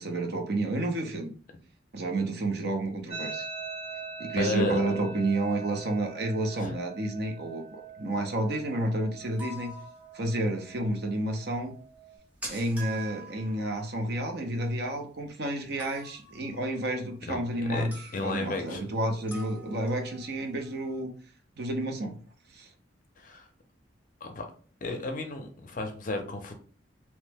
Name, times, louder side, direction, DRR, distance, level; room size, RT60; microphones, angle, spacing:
voice 1, 0.0-1.3 1.9-3.5 4.2-9.7 10.1-11.7 12.5-17.9 18.2-21.1 21.6-22.2 22.5-22.7, right 1 dB, 55° right, 4 dB, 0.6 m, -30 dB
sound 1, 3.1-12.1, right 5 dB, 30° right, 1.0 m, -43 dB
voice 2, 4.4-4.8 6.6-6.8 17.3-17.4 17.7-17.9 18.1-18.9 23.2-23.5 24.2-24.4 24.8-26.5, left 2 dB, 40° left, 4 dB, 0.5 m, -33 dB
sound 2, 9.2-10.7 10.9-11.0 11.4-11.5 11.6-11.7 11.9-15.2 15.8-17.6 17.9-18.6 19.3-21.0, right 2 dB, 5° right, 0.7 m, -46 dB
3.0 x 2.1 x 3.3 m, 0.41 s
head